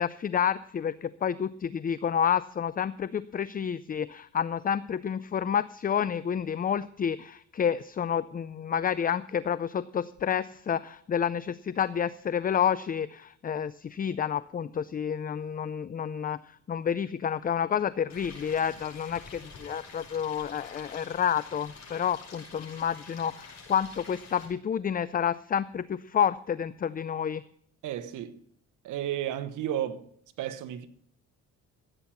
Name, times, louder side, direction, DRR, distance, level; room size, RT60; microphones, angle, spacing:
voice 1, 0.0-16.4 16.7-27.4, left 8 dB, 30° left, 0.4 m, -29 dB
Stream, 18.1-24.5, left 4 dB, 60° left, 6.5 m, -48 dB
voice 2, 27.8-28.4 28.8-30.1 30.4-30.9, right 11 dB, 85° right, 1.1 m, -33 dB
15.0 x 9.0 x 5.7 m
cardioid pair, 90°, 30 cm